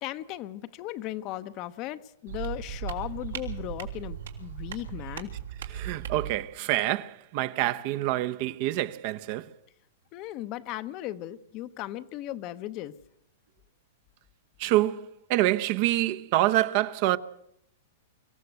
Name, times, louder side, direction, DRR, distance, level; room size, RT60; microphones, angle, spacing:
voice 1, 0.0-5.3 10.1-12.9, left 14 dB, 35° left, 0.8 m, -37 dB
sound 1, 2.3-6.4, right 9 dB, 85° right, 3.2 m, -37 dB
voice 2, 5.7-9.5 14.6-17.2, right 15 dB, 40° right, 0.8 m, -26 dB
25.0 x 15.0 x 8.0 m
supercardioid pair, 160°, 0 cm